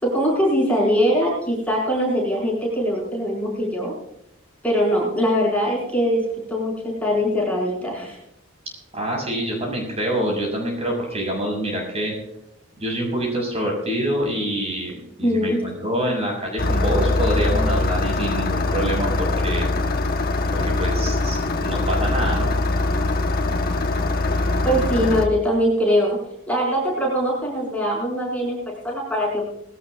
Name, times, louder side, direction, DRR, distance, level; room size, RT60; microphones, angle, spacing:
voice 1, 0.0-3.9 4.6-8.2 15.2-15.6 24.6-29.5, equal, 5° left, -4 dB, 6.1 m, -22 dB
voice 2, 8.9-12.1 12.8-19.7 20.5-22.5, right 1 dB, 30° right, -1 dB, 6.3 m, -26 dB
Engine starting, 16.6-25.3, left 2 dB, 50° left, 1.3 m, -22 dB
20.5 x 18.0 x 2.5 m, 0.79 s
head